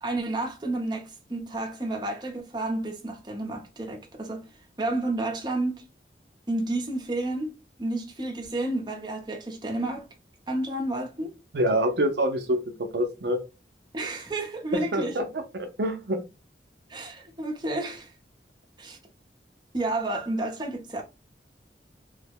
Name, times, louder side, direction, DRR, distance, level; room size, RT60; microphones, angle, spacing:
voice 1, 0.0-4.5 4.8-5.8 6.5-7.5 7.8-10.1 10.5-11.3 13.9-15.2 16.9-18.1 18.8-19.0 19.7-21.0, right 2 dB, 25° right, 0.7 m, -30 dB
voice 2, 11.5-12.6 12.9-13.4 14.9-15.3 15.5-16.2, right 1 dB, 70° right, 0.5 m, -25 dB
3.2 x 2.1 x 3.4 m
head